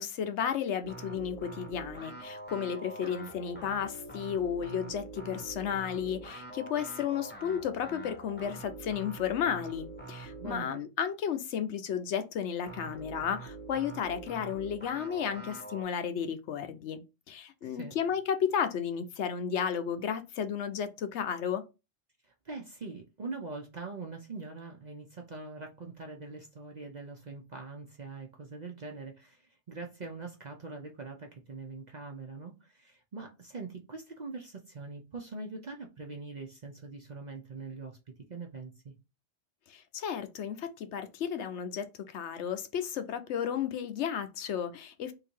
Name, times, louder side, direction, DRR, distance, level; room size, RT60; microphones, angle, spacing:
voice 1, 0.0-17.0 17.3-21.6 39.7-45.1, left 8 dB, 80° left, 0.9 m, -33 dB
sound 1, 0.8-10.7 12.7-15.8, right 2 dB, 10° left, 0.9 m, -45 dB
voice 2, 10.4-10.8 17.6-17.9 22.2-38.0 38.3-38.9, right 3 dB, 45° right, 0.7 m, -43 dB
3.8 x 2.6 x 4.4 m
omnidirectional pair, 1.2 m